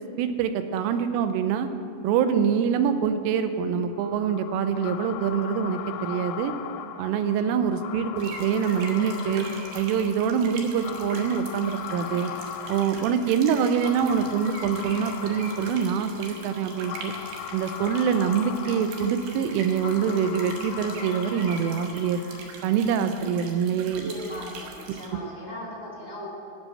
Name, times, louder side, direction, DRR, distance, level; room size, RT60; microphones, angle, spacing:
voice 1, 0.2-1.7 2.0-6.5 7.0-9.5 9.8-12.3 12.7-17.1 17.5-22.2 22.6-24.1 25.2-25.3, right 7 dB, 90° right, 9 dB, 3.2 m, -25 dB
sound 1, 4.0-22.9, left 10 dB, 85° left, 3.1 m, -39 dB
sound 2, 8.2-25.1, right 4 dB, 70° right, 3.3 m, -43 dB
voice 2, 24.0-26.3, equal, 35° right, -4 dB, 1.2 m, -38 dB
16.0 x 6.3 x 7.6 m, 2.5 s
omnidirectional pair, 5.7 m